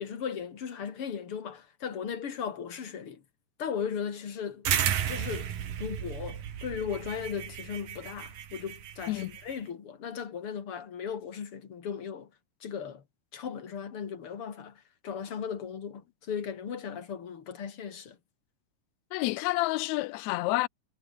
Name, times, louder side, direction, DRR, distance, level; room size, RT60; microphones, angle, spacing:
voice 1, 0.0-3.2 3.6-4.7 5.1-12.3 12.6-13.0 13.3-18.2, left 7 dB, 45° left, 3.0 m, -37 dB
sound 1, 4.7-9.6, right 10 dB, 85° right, 3.8 m, -33 dB
voice 2, 19.1-20.7, left 20 dB, 90° left, 1.6 m, -29 dB
omnidirectional pair, 3.8 m